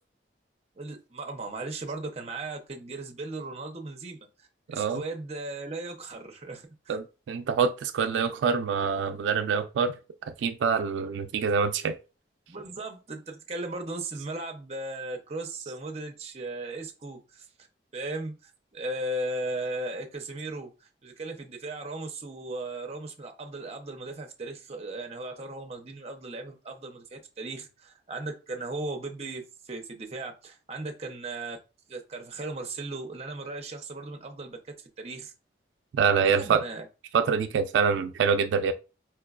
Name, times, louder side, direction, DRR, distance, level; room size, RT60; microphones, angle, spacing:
voice 1, 0.8-7.0 12.5-17.5 17.9-31.6 31.9-35.3 36.4-36.9, right 2 dB, 35° right, 0.6 m, -37 dB
voice 2, 6.9-9.9 10.4-11.9 35.9-36.6 37.1-38.7, right 6 dB, 85° right, 0.3 m, -25 dB
4.5 x 2.2 x 2.3 m
head